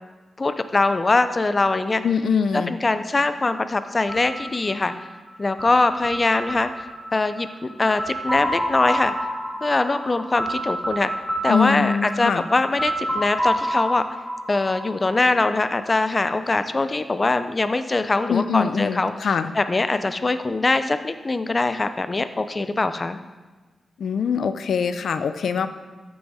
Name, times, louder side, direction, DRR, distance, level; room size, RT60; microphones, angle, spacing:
voice 1, 0.4-2.0 2.5-4.9 5.4-6.9 7.1-9.1 9.6-11.1 11.4-14.0 14.5-19.1 19.6-23.2, left 3 dB, 30° left, 10 dB, 0.4 m, -22 dB
voice 2, 2.0-2.7 11.5-12.4 18.3-19.5 24.0-25.7, left 6 dB, 80° left, 11 dB, 0.5 m, -23 dB
sound 1, 4.1-15.9, equal, ahead, 2.1 m, -29 dB
13.5 x 6.2 x 4.7 m, 1.3 s
wide cardioid pair, 130°, 0 cm